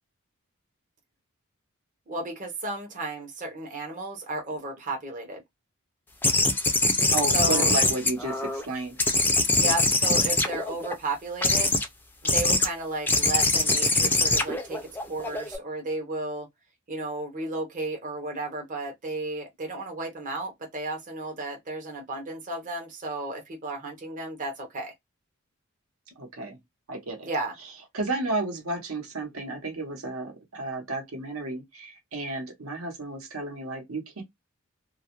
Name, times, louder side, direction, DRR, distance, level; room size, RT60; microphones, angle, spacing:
voice 1, 2.1-5.4 6.9-7.7 9.6-11.8 12.2-16.5 16.9-24.9 27.2-27.6, right 2 dB, 40° right, 0.6 m, -33 dB
sound 1, 6.2-8.6 9.0-10.9 11.4-11.9 12.2-12.7 13.1-15.6, left 2 dB, 10° left, 0.4 m, -23 dB
voice 2, 7.1-9.0 26.2-26.6 26.9-27.3 27.9-34.2, right 2 dB, 80° right, 0.9 m, -32 dB
2.3 x 2.1 x 2.9 m
head